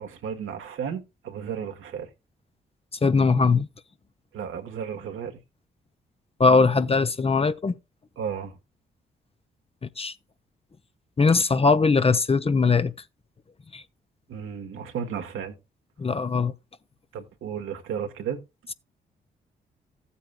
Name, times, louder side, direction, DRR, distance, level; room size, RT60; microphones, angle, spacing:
voice 1, 0.0-2.1 4.3-5.4 8.2-8.5 14.3-15.5 17.1-18.4, right 7 dB, 75° right, 1.3 m, -33 dB
voice 2, 3.0-3.7 6.4-7.8 9.8-10.1 11.2-12.9 13.7-13.8 16.0-16.5, left 4 dB, 30° left, 0.7 m, -20 dB
15.0 x 8.3 x 2.2 m
hypercardioid pair, 45°, 21 cm